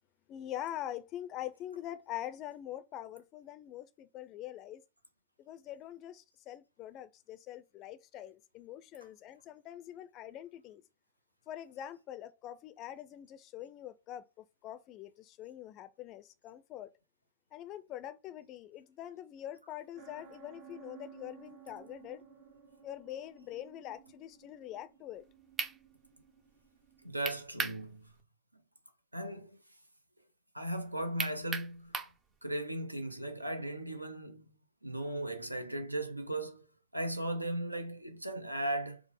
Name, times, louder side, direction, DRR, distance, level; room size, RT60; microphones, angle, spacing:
voice 1, 0.3-4.8 5.4-10.8 11.5-16.9 17.5-22.2 22.8-25.2, left 12 dB, 35° left, 0.4 m, -44 dB
sound 1, 20.0-27.4, right 7 dB, 50° right, 0.9 m, -56 dB
sound 2, 25.2-25.3 25.6-25.8 27.3-27.8 28.2-28.3 31.2-32.2, right 5 dB, 20° right, 0.5 m, -35 dB
voice 2, 27.0-28.1 29.1-29.5 30.5-31.9 32.4-34.5 34.8-36.7 36.9-39.0, right 1 dB, 85° right, 0.6 m, -37 dB
4.6 x 2.0 x 3.5 m
figure-of-eight pair, 90°, 0 cm